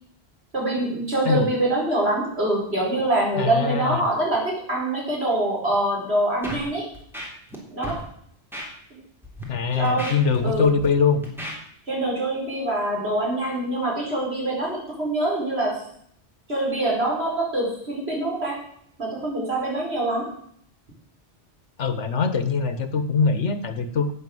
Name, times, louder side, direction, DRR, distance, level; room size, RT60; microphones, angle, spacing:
voice 1, 0.5-6.9 7.7-8.0 9.7-10.1 10.4-10.7 11.9-15.8 16.5-18.6 19.0-20.3, right 1 dB, 65° right, -2 dB, 5.0 m, -24 dB
voice 2, 3.4-4.0 9.5-11.2 21.8-24.1, left 5 dB, 85° left, 11 dB, 1.5 m, -22 dB
Scratching (performance technique), 6.4-6.6 6.9-7.6 7.8-8.0 8.5-8.7 9.2-9.4 9.8-10.9 11.2-11.5, equal, ahead, 3.5 m, -34 dB
11.5 x 8.5 x 7.8 m, 0.67 s
omnidirectional pair, 1.2 m